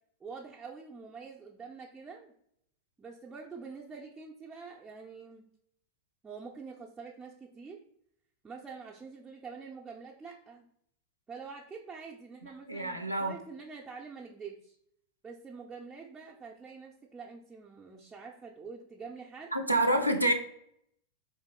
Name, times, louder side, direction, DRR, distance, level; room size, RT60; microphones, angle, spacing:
voice 1, 0.2-2.3 3.0-5.5 6.2-7.8 8.4-10.7 11.3-14.8 15.2-19.5, right 5 dB, 15° right, -3 dB, 0.5 m, -46 dB
voice 2, 12.4-13.3 19.5-20.3, right 1 dB, 90° right, 5 dB, 0.4 m, -28 dB
4.2 x 3.1 x 2.9 m, 0.72 s
figure-of-eight pair, 90°, 0 cm